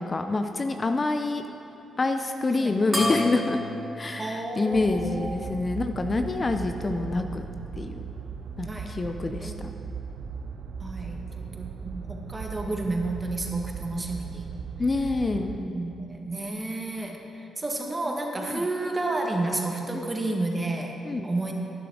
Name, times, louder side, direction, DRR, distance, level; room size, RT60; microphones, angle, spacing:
voice 1, 0.0-1.4 2.0-3.6 4.0-7.4 7.8-8.0 8.6-9.7 14.8-15.6 18.5-18.6 19.9-20.0 21.0-21.3, left 3 dB, 35° left, 6 dB, 0.6 m, -27 dB
sound 1, 2.9-5.7, left 1 dB, 5° right, 2.6 m, -33 dB
voice 2, 4.2-5.5 6.8-7.1 8.6-8.9 9.4-9.7 10.8-14.5 15.6-21.5, right 2 dB, 25° right, 2 dB, 1.7 m, -31 dB
sound 2, 4.7-15.6, right 6 dB, 65° right, 0.6 m, -38 dB
12.0 x 11.0 x 3.9 m, 2.8 s
hypercardioid pair, 50°, 0 cm